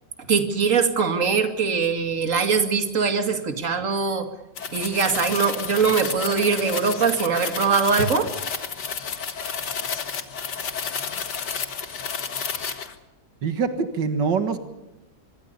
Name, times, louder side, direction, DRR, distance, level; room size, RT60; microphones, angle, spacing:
voice 1, 0.3-4.3 4.7-8.3, right 5 dB, 45° right, 7 dB, 2.6 m, -22 dB
sound 1, 4.6-12.9, left 6 dB, 70° left, 2.4 m, -31 dB
voice 2, 13.4-14.6, right 5 dB, 80° right, 9 dB, 2.3 m, -24 dB
25.0 x 22.5 x 6.9 m, 0.99 s
omnidirectional pair, 1.9 m